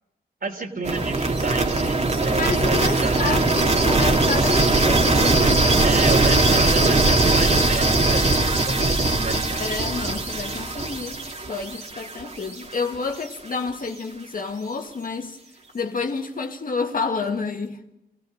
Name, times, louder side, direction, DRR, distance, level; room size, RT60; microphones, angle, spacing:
voice 1, 0.4-3.7 5.8-9.6, right 3 dB, 60° right, 3.4 m, -31 dB
sound 1, 0.8-12.8, right 2 dB, 45° right, 2.5 m, -20 dB
voice 2, 2.3-6.0 9.6-11.2 11.5-15.4 15.7-17.8, left 4 dB, 60° left, 1.9 m, -29 dB
26.5 x 17.0 x 6.5 m
cardioid pair, 75°, 16 cm